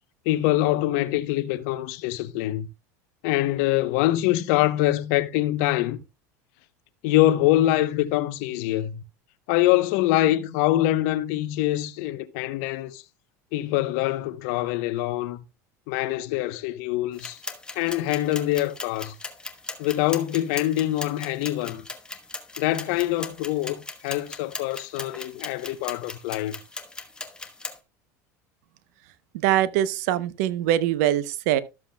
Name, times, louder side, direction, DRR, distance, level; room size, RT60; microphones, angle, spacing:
voice 1, 0.3-2.7 3.2-6.0 7.0-9.0 9.5-13.0 13.5-15.4 15.9-17.4 17.8-19.1 19.8-21.8 22.6-26.6, left 15 dB, 70° left, 0.7 m, -24 dB
sound 1, 17.1-27.8, left 3 dB, 10° left, 1.1 m, -39 dB
voice 2, 29.4-31.6, right 12 dB, 70° right, 0.7 m, -23 dB
13.0 x 7.3 x 2.2 m
hypercardioid pair, 95°, 9 cm